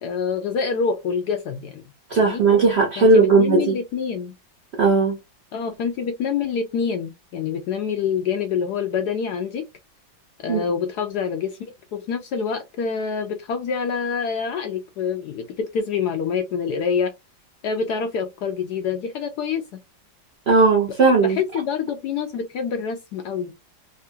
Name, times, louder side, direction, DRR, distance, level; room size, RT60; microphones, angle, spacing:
voice 1, 0.0-1.8 2.2-2.4 3.0-4.3 5.5-9.7 10.4-11.6 11.9-17.1 17.6-19.6 21.2-23.5, left 6 dB, 75° left, 0.9 m, -26 dB
voice 2, 2.1-3.7 4.8-5.1 10.5-10.7 20.5-21.4, right 3 dB, 55° right, 0.7 m, -17 dB
3.5 x 2.3 x 2.6 m
omnidirectional pair, 2.1 m